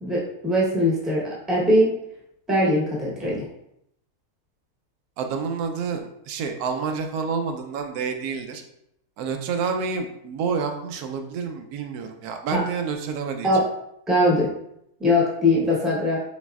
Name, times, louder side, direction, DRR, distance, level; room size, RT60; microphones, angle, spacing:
voice 1, 0.0-1.9 2.5-3.5 12.5-12.6 13.4-13.6 14.1-14.5 15.0-16.2, left 1 dB, ahead, -5 dB, 0.6 m, -21 dB
voice 2, 5.2-8.6 9.2-13.6, right 5 dB, 75° right, 5 dB, 1.1 m, -28 dB
4.2 x 4.1 x 2.3 m, 0.78 s
omnidirectional pair, 1.6 m